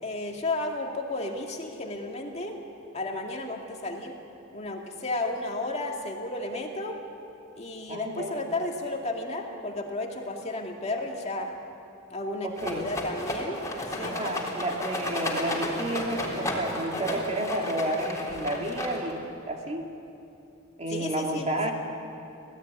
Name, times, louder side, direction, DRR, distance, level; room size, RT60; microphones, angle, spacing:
voice 1, 0.0-2.6 2.9-4.2 4.5-7.0 7.6-11.5 12.1-13.6 13.9-14.2 20.9-21.7, left 2 dB, 30° left, 1 dB, 2.3 m, -33 dB
voice 2, 7.9-8.5 12.4-12.9 14.0-19.2 19.5-19.9 20.8-21.7, right 1 dB, 30° right, 1 dB, 2.5 m, -31 dB
Rattle, 12.6-19.2, left 1 dB, 15° left, 3.9 m, -33 dB
26.5 x 17.5 x 9.8 m, 2.8 s
head